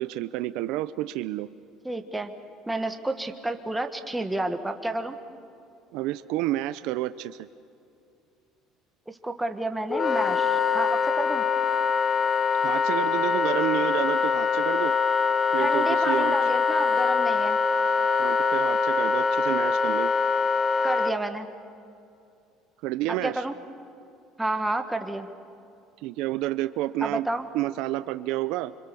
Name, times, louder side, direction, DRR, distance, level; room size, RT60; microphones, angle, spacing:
voice 1, 0.0-1.5 5.9-7.5 12.6-14.9 15.5-16.4 18.2-20.1 22.8-23.5 26.0-27.3 27.5-28.7, right 15 dB, 75° right, 13 dB, 0.6 m, -30 dB
voice 2, 1.8-2.3 2.7-5.2 9.1-11.4 15.6-17.6 20.8-21.5 23.2-23.5 24.4-25.3 27.0-27.5, right 2 dB, 5° right, 6 dB, 1.5 m, -30 dB
Wind instrument woodwind instrument, 9.9-21.1, left 5 dB, 30° left, 0.6 m, -23 dB
26.0 x 26.0 x 7.0 m, 2.6 s
cardioid pair, 135°, 0 cm